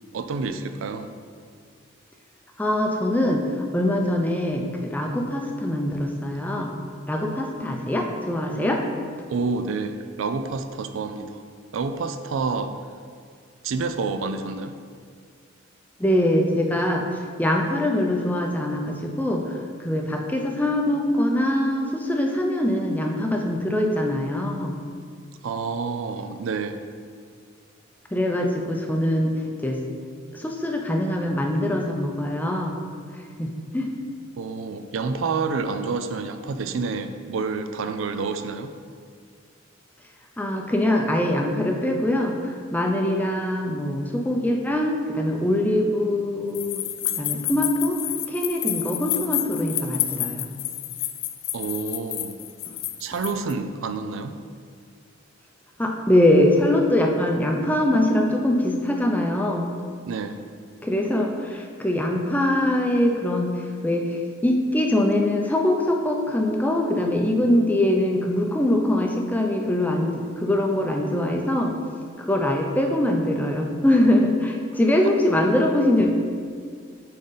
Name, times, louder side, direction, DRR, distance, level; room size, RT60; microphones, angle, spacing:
voice 1, 0.1-1.1 9.3-11.4 11.7-12.8 13.6-14.7 25.4-26.8 34.4-38.7 51.5-52.4 53.0-54.4 60.1-60.4, right 4 dB, 80° right, 9 dB, 0.4 m, -28 dB
voice 2, 2.6-6.7 7.1-8.8 16.0-24.8 28.1-29.3 29.6-29.8 30.3-32.8 33.1-33.9 40.4-46.8 47.2-48.0 48.3-50.5 55.8-59.7 60.8-71.8 72.2-76.1, left 1 dB, 10° left, 1 dB, 0.5 m, -23 dB
sound 1, 46.5-53.5, left 13 dB, 70° left, 0.4 m, -29 dB
9.0 x 3.8 x 4.0 m, 2.1 s
head